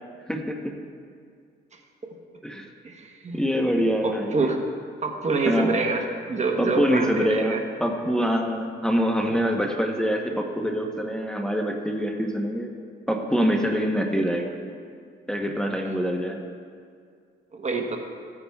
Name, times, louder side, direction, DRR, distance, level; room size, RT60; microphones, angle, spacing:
voice 1, 0.3-0.8 2.4-2.7 3.3-4.5 5.5-5.8 6.6-12.7 13.1-14.6 15.3-16.4, equal, 5° left, 1 dB, 0.9 m, -25 dB
voice 2, 2.8-3.4 4.0-4.6 5.0-7.6 17.5-18.0, right 3 dB, 35° right, 3 dB, 1.0 m, -26 dB
16.0 x 9.6 x 2.3 m, 2.2 s
cardioid pair, 90°, 20 cm